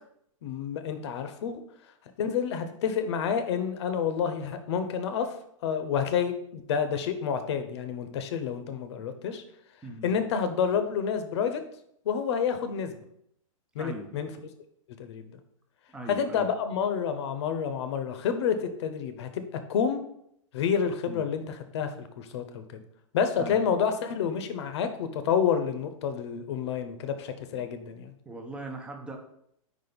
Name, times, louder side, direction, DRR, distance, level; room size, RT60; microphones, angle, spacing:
voice 1, 0.4-1.6 2.2-5.3 5.6-9.4 10.0-11.6 12.0-13.0 13.7-14.3 15.0-15.3 16.1-19.4 19.7-20.0 20.5-22.8 23.1-28.1, left 7 dB, 50° left, 9 dB, 0.8 m, -29 dB
voice 2, 9.8-10.2 13.8-14.1 15.9-16.5 21.1-21.2 23.4-23.6 28.3-29.2, right 1 dB, 5° right, 3 dB, 0.6 m, -40 dB
5.2 x 4.0 x 5.1 m, 0.72 s
hypercardioid pair, 155°, 18 cm